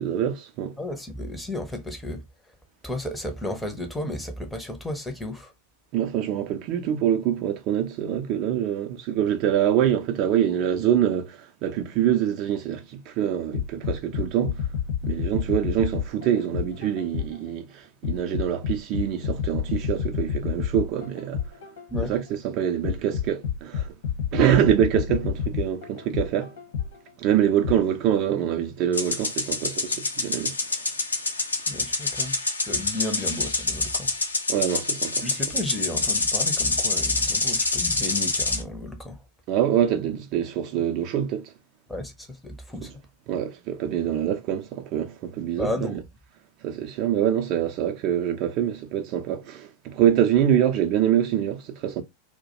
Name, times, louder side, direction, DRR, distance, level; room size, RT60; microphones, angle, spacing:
voice 1, 0.0-0.8 5.9-14.6 15.0-21.4 22.1-23.9 24.3-26.5 27.2-30.5 34.5-35.2 39.5-41.5 43.3-46.0 46.6-52.0, right 10 dB, 40° right, 0.4 m, -25 dB
voice 2, 0.8-2.2 2.8-5.5 21.9-22.1 31.7-32.4 32.7-34.1 35.2-39.2 41.9-42.9 45.6-46.0, left 1 dB, 5° left, 0.6 m, -33 dB
sound 1, 13.5-17.5 18.0-22.3 22.8-27.1 27.6-27.8, left 8 dB, 60° left, 1.0 m, -29 dB
sound 2, 28.9-38.6, left 3 dB, 75° left, 0.5 m, -26 dB
2.2 x 2.1 x 2.7 m
figure-of-eight pair, 90°, 0 cm